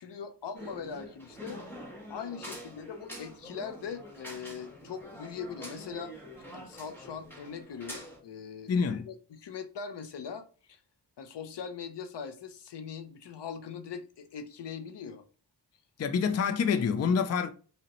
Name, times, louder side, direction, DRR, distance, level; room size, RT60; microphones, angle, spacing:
voice 1, 0.0-1.6 2.1-6.2 6.5-8.7 9.1-10.8 11.2-15.2, left 6 dB, 85° left, 0.6 m, -41 dB
sound 1, 0.5-8.2, equal, 5° left, 1.1 m, -46 dB
voice 2, 8.7-9.1 16.0-17.5, left 6 dB, 40° left, 0.4 m, -27 dB
4.9 x 2.1 x 2.9 m
wide cardioid pair, 105°, 41 cm